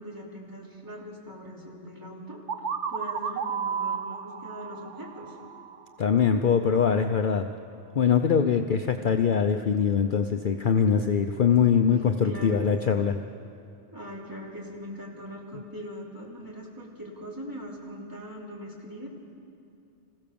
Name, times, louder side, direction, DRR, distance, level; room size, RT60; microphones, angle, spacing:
voice 1, 0.0-5.4 11.9-13.0 13.9-19.1, equal, 15° right, -3 dB, 3.3 m, -41 dB
sound 1, 2.5-6.2, right 6 dB, 80° right, 1.2 m, -33 dB
voice 2, 6.0-7.5 7.9-13.2, left 7 dB, 50° left, 6 dB, 0.8 m, -23 dB
26.5 x 15.5 x 7.0 m, 2.6 s
omnidirectional pair, 1.2 m